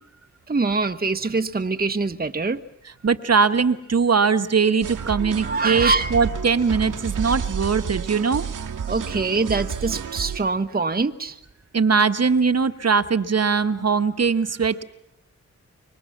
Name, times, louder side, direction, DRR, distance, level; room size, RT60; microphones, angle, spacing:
voice 1, 0.5-2.6 5.4-6.3 8.9-11.4, right 3 dB, 30° right, 8 dB, 1.1 m, -24 dB
voice 2, 3.0-8.5 11.7-14.8, right 5 dB, 55° right, 10 dB, 1.4 m, -21 dB
sound 1, 4.8-10.4, right 7 dB, 90° right, 1.5 m, -30 dB
26.0 x 23.0 x 7.3 m, 0.85 s
cardioid pair, 45°, 31 cm